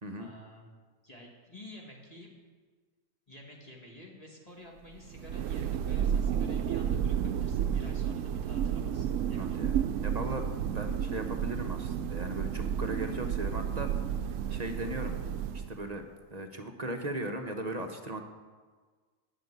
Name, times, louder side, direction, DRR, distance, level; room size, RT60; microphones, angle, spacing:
voice 1, 0.2-0.7 1.0-2.3 3.3-9.6, left 1 dB, 25° left, -2 dB, 2.1 m, -50 dB
Thunder, 5.0-16.0, right 9 dB, 70° right, 0.9 m, -31 dB
voice 2, 9.4-9.8 10.0-10.5 10.7-14.1 14.5-15.2 15.5-16.0 16.3-18.2, right 1 dB, 35° right, 5 dB, 0.9 m, -37 dB
12.0 x 6.5 x 9.5 m, 1.5 s
omnidirectional pair, 1.4 m